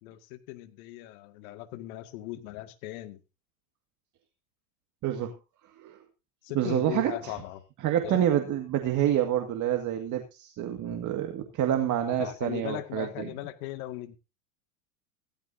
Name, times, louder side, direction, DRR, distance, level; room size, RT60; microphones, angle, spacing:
voice 1, 0.0-3.2 6.4-7.6 8.0-8.3 10.9-11.0 12.2-14.2, left 16 dB, 65° left, 9 dB, 2.1 m, -38 dB
voice 2, 5.0-5.3 5.8-6.0 6.5-7.3 7.8-13.3, right 11 dB, 40° right, 5 dB, 2.0 m, -28 dB
16.0 x 14.5 x 2.7 m, 0.29 s
hypercardioid pair, 100°, 46 cm